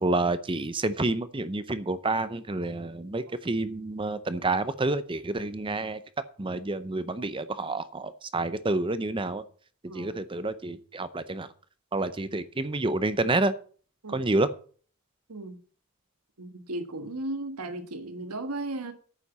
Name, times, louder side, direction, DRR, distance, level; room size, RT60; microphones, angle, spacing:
voice 1, 0.0-6.0 6.4-9.4 9.9-11.5 11.9-13.5 14.1-14.5, right 2 dB, 25° right, 0.6 m, -29 dB
voice 2, 9.9-10.2 12.3-12.4 14.0-14.2 15.3-15.6 16.4-18.9, right 2 dB, 90° right, 1.5 m, -36 dB
9.3 x 7.0 x 7.1 m
head